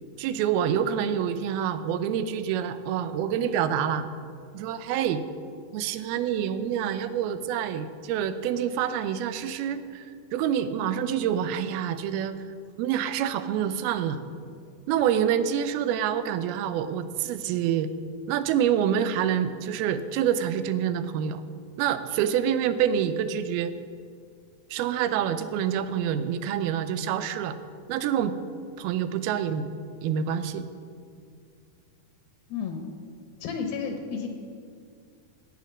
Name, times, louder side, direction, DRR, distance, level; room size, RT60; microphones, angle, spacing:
voice 1, 0.2-4.1 4.5-5.2 5.7-10.0 10.3-12.4 12.8-14.3 14.9-17.9 18.3-21.4 21.8-23.7 24.7-27.6 27.9-28.3 28.8-29.7 30.0-30.7, right 9 dB, 90° right, 12 dB, 2.6 m, -27 dB
voice 2, 32.5-32.8 33.4-34.3, left 6 dB, 75° left, 4 dB, 2.8 m, -31 dB
17.0 x 7.4 x 6.2 m, 2.3 s
omnidirectional pair, 4.3 m